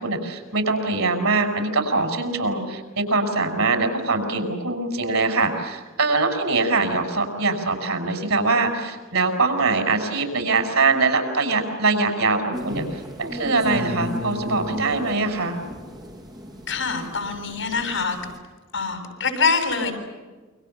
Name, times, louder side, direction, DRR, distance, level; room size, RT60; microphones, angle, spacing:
voice 1, 0.0-12.8 13.2-15.6, right 3 dB, 85° right, 6 dB, 6.8 m, -23 dB
sound 1, 12.5-18.4, equal, 20° right, 5.3 m, -34 dB
voice 2, 16.7-18.2 18.7-19.9, left 4 dB, 60° left, 6 dB, 7.5 m, -24 dB
29.0 x 26.0 x 7.1 m, 1.3 s
head